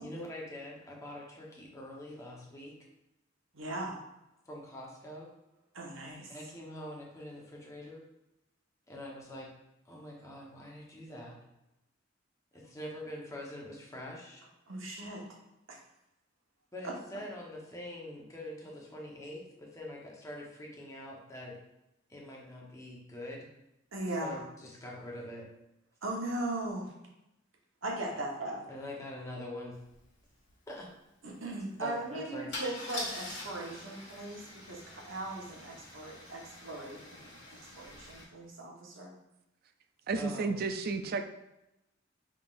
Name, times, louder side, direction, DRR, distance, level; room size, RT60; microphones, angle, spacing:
voice 1, 0.0-2.8 4.5-5.3 6.3-8.0 8.9-9.5 9.8-11.4 12.5-14.4 16.7-21.6 22.1-23.5 24.2-25.5 28.1-28.2 28.7-29.8 30.7-30.9 31.8-32.5 40.1-40.6, left 1 dB, 15° left, -2 dB, 1.0 m, -44 dB
voice 2, 3.5-4.0 5.7-6.3 14.7-15.3 15.7-15.8 16.8-16.9 23.9-24.4 26.0-26.9 27.8-28.6 31.2-39.1, right 1 dB, 80° right, -1 dB, 1.2 m, -38 dB
Car / Engine starting / Idling, 29.9-30.0 30.3-30.5 32.5-38.2, left 2 dB, 60° left, 1.6 m, -44 dB
voice 3, 40.1-41.2, right 4 dB, 50° right, 8 dB, 0.4 m, -32 dB
5.8 x 3.6 x 2.5 m, 0.90 s
head